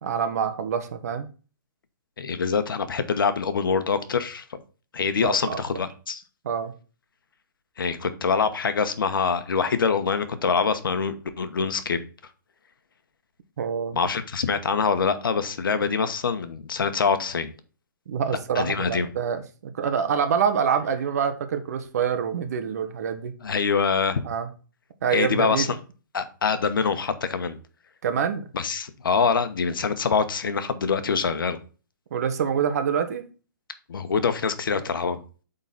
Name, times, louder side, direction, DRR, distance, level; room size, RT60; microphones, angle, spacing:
voice 1, 0.0-1.3 5.2-5.6 6.4-6.7 13.6-14.0 18.1-23.3 24.2-24.5 25.0-25.7 28.0-28.5 32.1-33.2, right 7 dB, 50° right, 8 dB, 1.2 m, -26 dB
voice 2, 2.2-4.6 4.9-6.2 7.8-12.0 13.9-17.5 18.5-19.1 23.4-24.2 25.1-25.8 26.1-27.6 28.5-31.6 33.9-35.2, left 5 dB, 85° left, 10 dB, 1.1 m, -25 dB
8.4 x 4.0 x 4.0 m, 0.36 s
hypercardioid pair, 165°, 11 cm